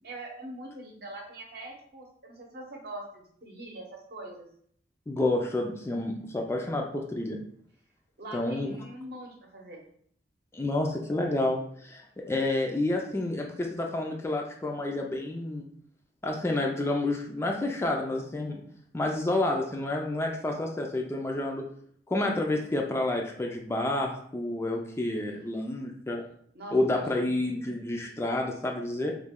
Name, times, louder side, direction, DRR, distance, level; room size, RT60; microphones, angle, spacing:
voice 1, 0.0-4.5 8.2-9.8 26.5-27.2, right 1 dB, 60° right, 0 dB, 0.8 m, -43 dB
voice 2, 5.1-7.4 8.3-8.8 10.5-15.7 16.2-18.6 18.9-21.6 22.1-26.2 26.7-29.1, left 2 dB, 15° left, 1 dB, 0.3 m, -29 dB
3.1 x 2.1 x 3.5 m, 0.62 s
head